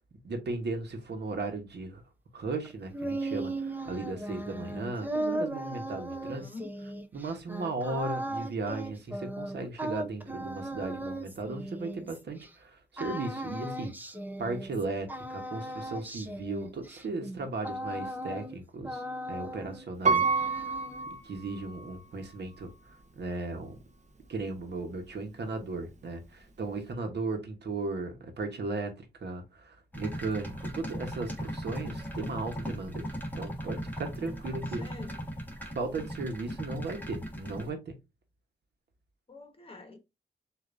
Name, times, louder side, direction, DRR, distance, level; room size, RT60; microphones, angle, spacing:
voice 1, 0.2-2.0 2.3-6.5 7.1-13.9 14.4-19.0 19.3-20.7 21.2-22.7 23.2-23.8 24.3-33.1 33.3-34.8 35.7-38.0, right 3 dB, 85° right, 1.1 m, -36 dB
sound 1, 2.6-12.5 13.0-14.8 15.1-18.6 18.8-19.9 20.2-21.1, right 1 dB, 10° right, 0.6 m, -37 dB
voice 2, 6.1-6.7 34.4-35.2 39.3-40.0, left 3 dB, 35° left, 1.3 m, -46 dB
Piano, 20.0-22.0 22.6-22.7, right 4 dB, 45° right, 0.8 m, -28 dB
sound 2, 29.9-37.7, equal, 10° left, 1.5 m, -38 dB
6.8 x 2.6 x 2.5 m
wide cardioid pair, 80°, 17 cm